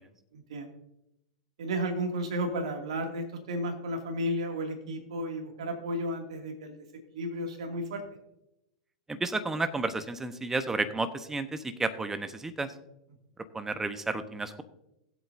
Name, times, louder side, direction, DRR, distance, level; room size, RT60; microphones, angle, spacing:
voice 1, 0.3-0.7 1.6-6.7 7.1-8.0, equal, 70° right, 3 dB, 2.4 m, -33 dB
voice 2, 9.1-12.7 13.5-14.6, right 3 dB, 10° right, 11 dB, 1.0 m, -32 dB
19.5 x 8.1 x 2.7 m, 0.85 s
hypercardioid pair, 100°, 3 cm